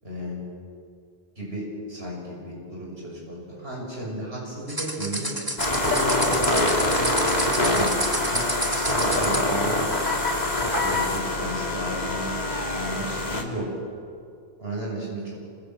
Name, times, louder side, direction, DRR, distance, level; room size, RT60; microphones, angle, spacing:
voice 1, 0.0-0.4 1.4-5.3 5.8-6.3 6.8-7.1 7.7-7.9 8.3-8.5 8.7-9.8 10.8-12.4 12.7-13.7 14.6-15.3, right 1 dB, 75° right, -3 dB, 6.8 m, -33 dB
sound 1, 4.7-9.5, right 1 dB, 20° right, 2.2 m, -30 dB
sound 2, 5.6-13.4, left 2 dB, 45° left, 3.3 m, -24 dB
28.5 x 26.5 x 7.7 m, 2.3 s
omnidirectional pair, 1.0 m